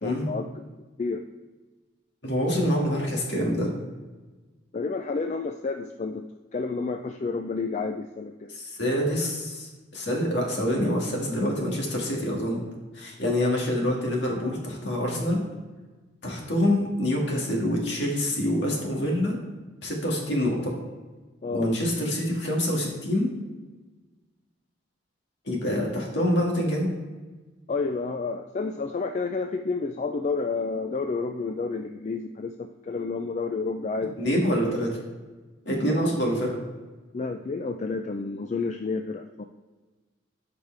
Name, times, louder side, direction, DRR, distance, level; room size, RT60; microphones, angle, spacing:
voice 1, 0.0-0.7 1.0-1.2 4.7-6.3 6.5-8.6 21.4-21.8 27.7-34.2 37.1-39.4, left 4 dB, 35° left, 5 dB, 0.3 m, -30 dB
voice 2, 2.2-3.7 8.5-12.6 12.9-15.4 16.2-19.4 19.8-20.8 21.5-23.3 25.5-26.9 34.2-35.0 35.7-36.6, equal, 60° left, -1 dB, 2.0 m, -26 dB
13.0 x 5.1 x 3.4 m, 1.3 s
head